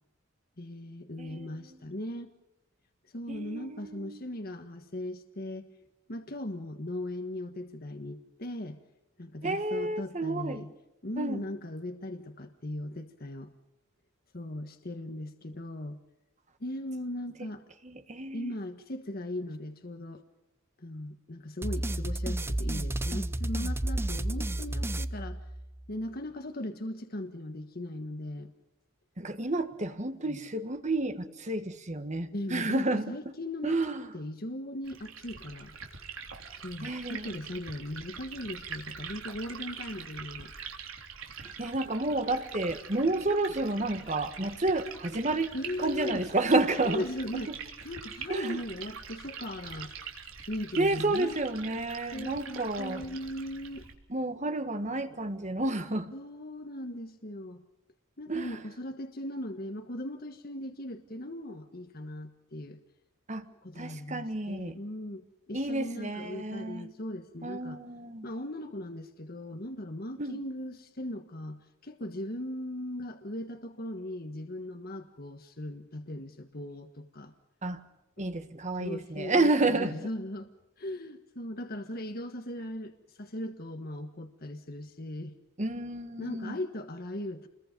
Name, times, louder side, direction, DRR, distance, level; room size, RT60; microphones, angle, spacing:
voice 1, 0.6-2.3 3.1-5.7 6.1-8.8 9.2-10.7 11.0-13.5 14.3-16.0 16.6-17.6 18.3-20.2 20.8-25.4 25.9-28.5 30.3-30.4 32.3-33.8 34.1-35.7 36.5-40.5 45.5-46.2 46.8-47.5 47.8-49.9 50.4-51.4 52.1-53.8 56.1-57.6 58.2-62.8 63.6-67.8 68.2-77.3 78.8-80.5 80.8-85.3 86.2-87.5, left 1 dB, 45° left, 6 dB, 1.5 m, -38 dB
voice 2, 1.2-1.8 3.3-4.2 9.4-10.6 11.2-11.4 17.8-18.5 29.2-33.0 33.6-34.1 36.8-37.3 41.4-45.5 45.8-47.0 48.3-48.6 50.8-53.1 54.1-56.1 58.3-58.6 63.3-63.4 63.7-64.8 65.5-66.9 67.4-68.3 70.2-70.4 77.6-77.8 78.2-80.0 85.6-86.6, right 2 dB, 35° right, 8 dB, 1.6 m, -30 dB
sound 1, 21.6-25.9, right 1 dB, 10° right, 0.7 m, -32 dB
Liquid, 34.8-53.9, right 6 dB, 80° right, 3.6 m, -44 dB
29.5 x 22.0 x 5.3 m, 0.92 s
head